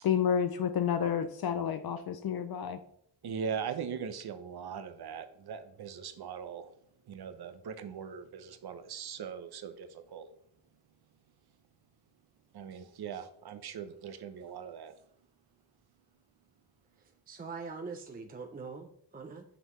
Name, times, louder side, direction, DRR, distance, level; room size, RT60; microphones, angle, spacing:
voice 1, 0.0-2.8, left 8 dB, 55° left, 9 dB, 0.6 m, -30 dB
voice 2, 3.2-6.7 7.1-10.3 12.5-14.9, right 7 dB, 55° right, 10 dB, 0.8 m, -40 dB
voice 3, 17.3-19.4, right 4 dB, 20° right, 4 dB, 0.6 m, -43 dB
5.9 x 5.4 x 3.1 m, 0.68 s
cardioid pair, 90°, 45 cm